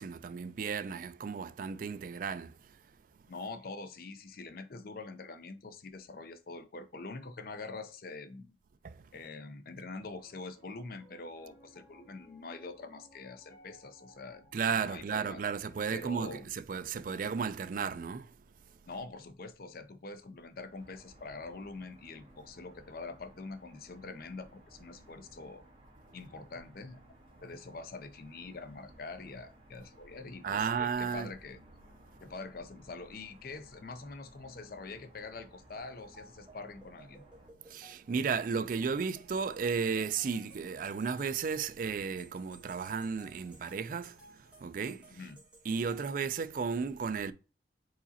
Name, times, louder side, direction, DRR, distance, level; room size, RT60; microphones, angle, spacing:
voice 1, 0.0-2.8 8.8-9.1 14.5-18.4 18.9-19.0 30.4-31.3 37.6-45.3 45.6-47.3, right 5 dB, 50° right, 0.3 m, -34 dB
voice 2, 3.3-8.6 9.1-14.5 14.8-15.4 15.9-16.5 18.9-25.6 26.1-27.0 27.4-31.6 32.2-37.2 45.1-45.4, left 3 dB, 55° left, 0.6 m, -45 dB
Piano, 9.8-20.2, left 1 dB, 80° left, 2.4 m, -63 dB
sound 1, 20.7-37.5, right 1 dB, 30° right, 1.9 m, -58 dB
sound 2, 36.0-46.6, right 1 dB, 5° right, 1.9 m, -59 dB
4.7 x 4.1 x 2.8 m
head